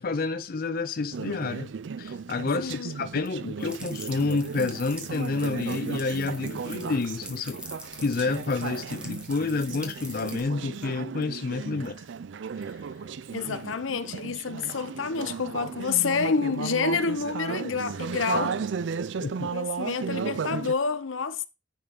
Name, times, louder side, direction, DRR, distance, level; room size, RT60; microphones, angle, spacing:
voice 1, 0.0-1.7 2.0-7.6 8.0-11.9 12.6-12.8 19.2-19.5, left 3 dB, 50° left, 0.5 m, -29 dB
Conversation / Chatter, 1.1-20.7, right 5 dB, 65° right, 0.4 m, -35 dB
voice 2, 2.6-3.0 11.8-12.0 13.3-18.6 19.5-21.5, left 5 dB, 85° left, 0.8 m, -28 dB
sound 1, 3.6-10.4, equal, 5° right, 1.3 m, -44 dB
9.9 x 3.4 x 5.3 m
head